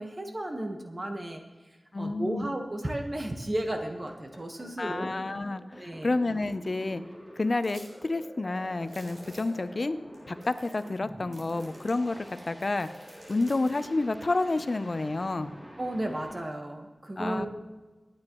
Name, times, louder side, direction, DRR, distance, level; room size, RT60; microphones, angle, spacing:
voice 1, 0.0-1.4 2.0-5.1 5.8-6.1 15.8-17.5, right 1 dB, 35° right, 3 dB, 1.3 m, -34 dB
voice 2, 1.9-2.5 4.8-7.0 7.4-10.0 10.3-12.9 13.3-15.5 17.2-17.5, left 2 dB, 55° left, 12 dB, 0.6 m, -29 dB
sound 1, 3.8-16.3, equal, 20° right, 2.9 m, -47 dB
sound 2, 7.6-7.9 8.2-8.3 8.8-9.6 10.1-10.2 10.4-11.0 11.3-13.8, right 1 dB, 85° right, 3.6 m, -53 dB
25.0 x 9.5 x 3.1 m, 1.3 s
wide cardioid pair, 70°, 0 cm